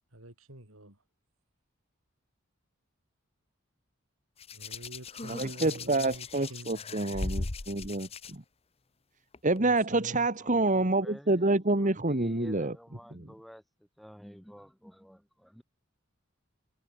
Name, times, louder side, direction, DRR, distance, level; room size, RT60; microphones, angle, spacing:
voice 1, 0.1-1.0 4.5-7.0 9.6-10.3, right 1 dB, 75° right, 5.7 m, -47 dB
Hands, 4.4-8.3 9.3-9.6, left 3 dB, 30° left, 0.8 m, -38 dB
voice 2, 5.3-8.4 9.4-12.8 13.1-13.3, right 2 dB, 35° right, 1.7 m, -28 dB
voice 3, 10.4-11.5 11.7-13.6 14.0-15.6, equal, ahead, 2.6 m, -50 dB
head